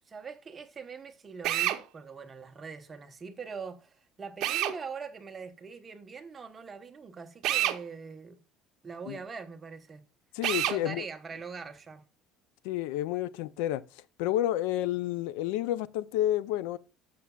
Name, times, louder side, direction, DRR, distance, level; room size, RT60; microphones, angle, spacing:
voice 1, 0.1-8.4 8.8-10.0 10.7-12.0, right 5 dB, 20° right, 0.9 m, -42 dB
Drill, 1.4-1.8 4.4-4.8 7.4-7.8 10.4-10.8, right 13 dB, 50° right, 0.8 m, -27 dB
voice 2, 10.3-11.1 12.6-13.8 14.2-16.8, left 13 dB, 90° left, 0.4 m, -30 dB
12.5 x 7.0 x 2.3 m
cardioid pair, 160°, 0 cm